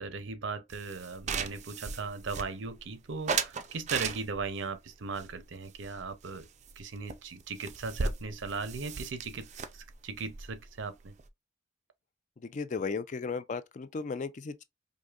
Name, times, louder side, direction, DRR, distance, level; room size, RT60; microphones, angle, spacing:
voice 1, 0.0-6.5 6.8-11.1, right 4 dB, 75° right, 0.6 m, -38 dB
sound 1, 0.7-2.8 3.3-4.6 5.1-6.4 6.7-6.8 7.1-7.2 7.4-11.3, right 5 dB, 35° right, 0.4 m, -36 dB
voice 2, 12.4-14.6, left 4 dB, 40° left, 0.4 m, -35 dB
4.8 x 2.6 x 2.4 m
head